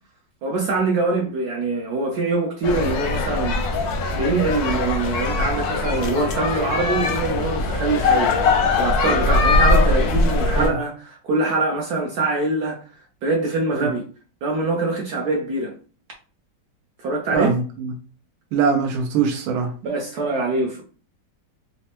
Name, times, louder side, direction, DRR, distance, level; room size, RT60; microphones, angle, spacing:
voice 1, 0.4-3.6 4.1-8.3 8.7-12.8 13.2-14.1 14.4-15.7 17.0-17.6 19.8-20.8, right 3 dB, 65° right, 1.0 m, -24 dB
sound 1, 2.6-10.7, left 3 dB, 70° left, 0.9 m, -21 dB
voice 2, 17.3-17.9 18.5-19.7, right 5 dB, 90° right, 1.5 m, -22 dB
4.1 x 2.2 x 2.8 m
omnidirectional pair, 2.2 m